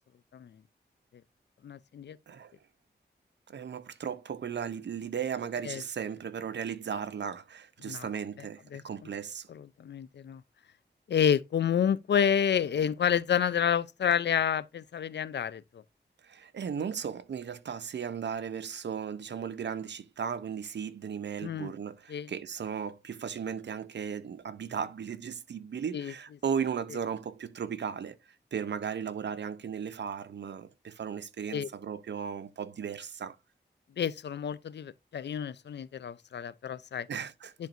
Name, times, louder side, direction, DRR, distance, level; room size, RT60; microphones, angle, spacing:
voice 1, 1.6-2.2 5.7-5.8 7.8-8.1 8.7-8.8 9.5-10.4 11.1-15.8 21.4-21.7 22.1-22.3 25.9-26.1 31.5-31.7 34.0-37.1, left 8 dB, 70° left, 0.5 m, -29 dB
voice 2, 3.5-9.5 16.2-33.4 37.1-37.5, right 7 dB, 75° right, 0.7 m, -36 dB
10.5 x 4.5 x 2.6 m
wide cardioid pair, 90°, 18 cm